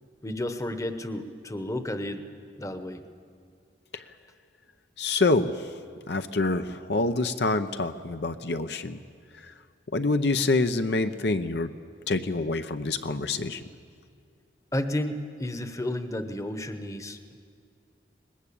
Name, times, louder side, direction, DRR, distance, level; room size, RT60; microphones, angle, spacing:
voice 1, 0.2-2.2 2.6-3.0 14.7-17.3, left 1 dB, 20° left, 9 dB, 1.0 m, -32 dB
voice 2, 5.0-5.7 6.1-9.0 9.4-9.5 9.9-11.7 12.1-13.6, left 3 dB, 70° left, 9 dB, 0.8 m, -26 dB
22.0 x 20.0 x 8.6 m, 2.2 s
head